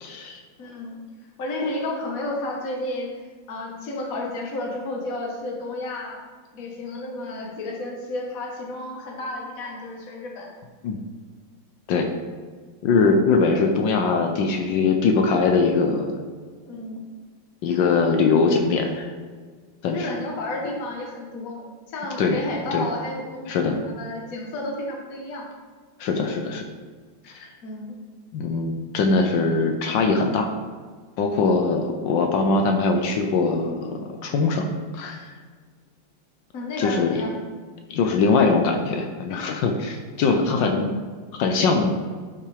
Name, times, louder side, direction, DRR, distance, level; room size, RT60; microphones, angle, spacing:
voice 1, 0.0-0.4 10.8-11.0 11.9-12.1 12.8-16.1 17.6-19.1 19.8-20.1 22.2-22.4 22.7-22.8 23.5-23.8 26.0-26.6 27.2-27.5 28.3-30.5 31.2-34.7 34.9-35.3 36.8-37.2 37.9-40.9 41.4-42.0, left 4 dB, 75° left, 3 dB, 1.4 m, -21 dB
voice 2, 0.6-1.0 1.4-3.1 3.5-6.2 6.5-10.5 16.6-17.0 19.9-25.5 27.6-28.0 36.5-37.4, left 2 dB, 50° left, -1 dB, 1.6 m, -31 dB
11.5 x 5.7 x 3.4 m, 1.5 s
omnidirectional pair, 2.1 m